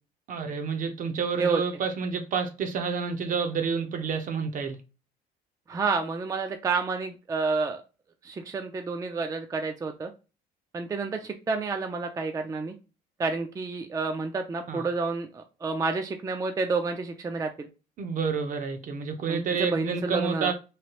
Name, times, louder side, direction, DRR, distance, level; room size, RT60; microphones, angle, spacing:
voice 1, 0.3-4.8 14.7-14.8 18.0-20.5, right 5 dB, 50° right, 0.7 m, -29 dB
voice 2, 5.7-7.8 8.2-10.1 10.7-12.7 13.2-17.7 19.3-20.5, right 4 dB, 20° right, 0.4 m, -29 dB
3.1 x 2.3 x 2.9 m
cardioid pair, 110°, 17 cm